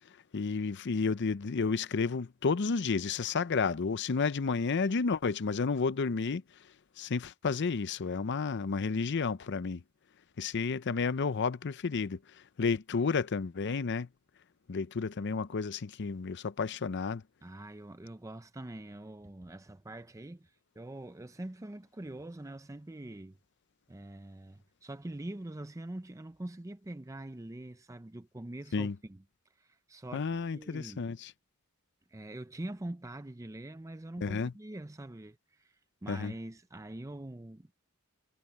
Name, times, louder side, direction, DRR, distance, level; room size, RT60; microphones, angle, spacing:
voice 1, 0.3-6.4 7.0-9.8 10.4-12.2 12.6-14.1 14.7-17.2 28.7-28.9 30.1-31.3 34.2-34.5 36.1-36.3, left 4 dB, 55° left, 0.6 m, -31 dB
voice 2, 17.4-23.4 23.9-29.2 29.6-31.1 32.1-37.7, right 1 dB, 15° right, 0.6 m, -44 dB
head